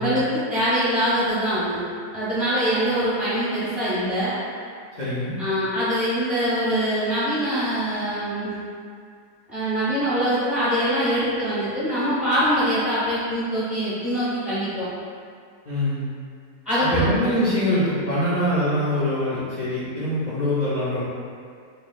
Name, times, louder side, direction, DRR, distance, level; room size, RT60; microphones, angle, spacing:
voice 1, 0.0-1.8 2.1-4.3 5.4-8.6 9.5-14.9 16.6-17.0 17.3-17.4, equal, 25° left, -12 dB, 1.0 m, -23 dB
voice 2, 4.9-5.4 15.6-16.1 16.8-21.0, equal, 50° left, -11 dB, 0.5 m, -24 dB
4.7 x 3.1 x 2.2 m, 2.2 s
omnidirectional pair, 1.8 m